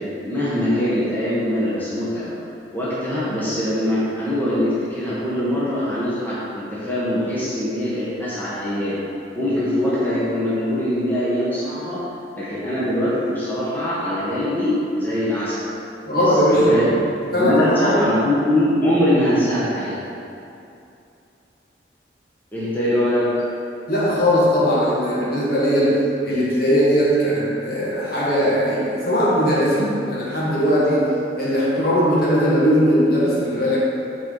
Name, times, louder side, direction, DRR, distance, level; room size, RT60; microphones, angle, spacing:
voice 1, 0.0-2.4 2.7-9.0 9.3-12.0 12.3-15.6 16.2-20.0 22.5-23.3, left 1 dB, 10° left, -10 dB, 1.2 m, -22 dB
voice 2, 16.1-16.9 17.3-18.1 23.9-33.8, equal, 55° left, -7 dB, 1.7 m, -19 dB
8.2 x 4.5 x 4.0 m, 2.7 s
head